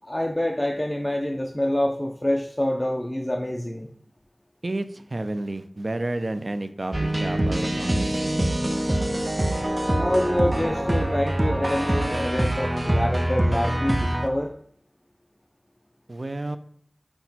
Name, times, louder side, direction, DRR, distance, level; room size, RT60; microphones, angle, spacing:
voice 1, 0.0-3.9 9.9-14.5, left 1 dB, 25° left, 1 dB, 0.5 m, -26 dB
voice 2, 4.6-8.3 16.1-16.6, right 2 dB, 65° right, 10 dB, 0.3 m, -31 dB
sound 1, 6.9-14.3, right 1 dB, 30° right, 0.6 m, -24 dB
6.0 x 2.2 x 4.1 m, 0.68 s
wide cardioid pair, 45°, 0 cm